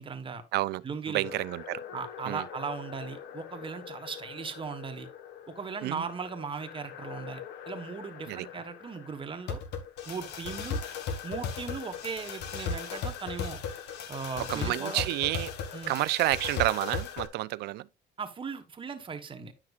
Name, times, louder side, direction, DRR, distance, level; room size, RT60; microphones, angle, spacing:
voice 1, 0.0-0.4 0.8-1.2 1.9-5.1 5.5-9.6 10.1-10.8 11.2-13.6 14.1-15.1 15.7-15.9 18.2-19.5, right 5 dB, 30° right, 1.3 m, -38 dB
voice 2, 0.5-1.8 2.3-2.4 5.8-6.1 8.3-8.5 14.4-15.5 15.9-17.9, right 18 dB, 75° right, 0.4 m, -30 dB
sound 1, 1.2-17.3, left 6 dB, 80° left, 1.2 m, -38 dB
9.7 x 5.9 x 2.4 m
cardioid pair, 110°, 17 cm